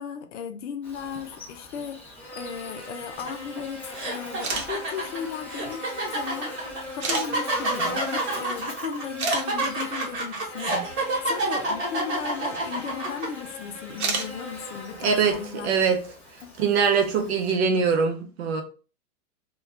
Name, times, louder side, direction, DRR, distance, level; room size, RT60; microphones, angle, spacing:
voice 1, 0.0-6.5 6.9-15.7 16.4-16.7, left 7 dB, 55° left, 0.5 m, -36 dB
Buzz, 0.8-17.6, left 1 dB, 5° left, 0.7 m, -39 dB
sound 1, 3.3-3.4 3.9-13.3, right 2 dB, 30° right, 1.3 m, -28 dB
sound 2, 4.3-4.7 5.7-5.8 7.0-7.3 8.7-8.8 9.2-9.4 12.1-12.2 13.9-14.3, right 4 dB, 80° right, 0.8 m, -28 dB
voice 2, 15.0-16.0 16.6-18.6, right 6 dB, 50° right, 0.6 m, -23 dB
2.3 x 2.3 x 3.2 m
hypercardioid pair, 140°, 43 cm